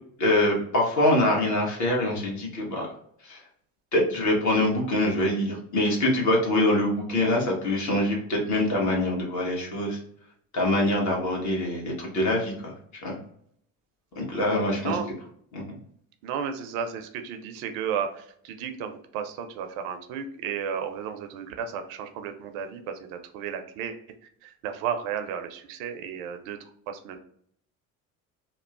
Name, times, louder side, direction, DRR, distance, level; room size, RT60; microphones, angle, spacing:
voice 1, 0.2-2.9 3.2-3.4 3.9-10.0 10.5-12.7 13.0-13.2 14.2-14.9 15.5-15.6, left 1 dB, 40° left, -1 dB, 1.2 m, -24 dB
voice 2, 16.2-23.9 24.4-26.6 26.9-27.2, right 7 dB, 70° right, 7 dB, 0.5 m, -33 dB
2.9 x 2.0 x 2.3 m, 0.67 s
hypercardioid pair, 60°, 42 cm